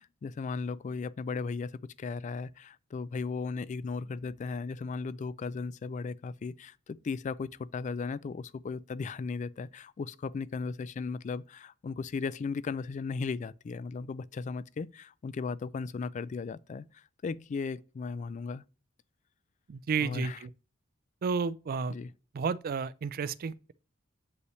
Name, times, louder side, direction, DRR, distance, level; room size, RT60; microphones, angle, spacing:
voice 1, 0.0-1.7 2.0-18.6 20.0-20.4 21.9-22.1, left 4 dB, 35° left, 0.3 m, -36 dB
voice 2, 19.7-20.5 21.2-22.0 22.3-23.7, right 5 dB, 45° right, 0.4 m, -32 dB
8.0 x 5.5 x 3.1 m
head